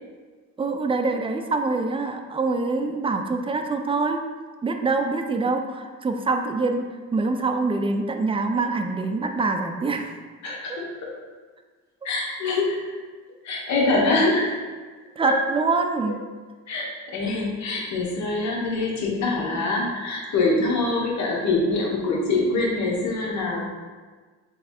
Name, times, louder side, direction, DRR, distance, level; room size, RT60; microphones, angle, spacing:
voice 1, 0.6-4.2 4.6-6.8 7.1-10.2 10.7-10.8 12.5-12.6 15.2-16.2, right 3 dB, 20° right, 5 dB, 0.4 m, -25 dB
voice 2, 10.4-11.1 12.0-12.8 13.4-14.5 15.2-15.3 16.7-23.7, left 2 dB, 65° left, -2 dB, 1.1 m, -24 dB
3.5 x 3.2 x 4.2 m, 1.4 s
cardioid pair, 90°, 30 cm